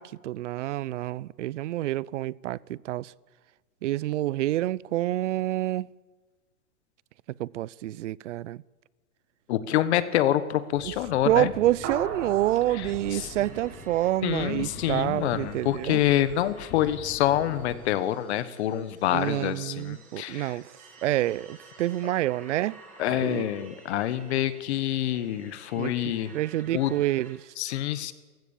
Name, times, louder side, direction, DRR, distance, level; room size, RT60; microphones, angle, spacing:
voice 1, 0.0-3.1 3.8-5.9 7.4-8.6 10.8-10.9 11.2-16.0 19.1-20.7 21.0-22.8 23.1-23.4 25.8-25.9 26.3-27.5, right 15 dB, 55° right, 0.6 m, -28 dB
voice 2, 9.5-11.5 12.7-13.3 14.2-20.6 23.0-26.3 26.7-26.9 27.6-28.1, left 12 dB, 50° left, 1.2 m, -27 dB
sound 1, 10.7-17.8, left 3 dB, 25° left, 5.1 m, -44 dB
sound 2, 11.8-14.5, right 6 dB, 35° right, 3.6 m, -39 dB
sound 3, 13.4-27.3, right 3 dB, 15° right, 4.7 m, -53 dB
28.5 x 16.0 x 7.2 m
supercardioid pair, 160°, 44 cm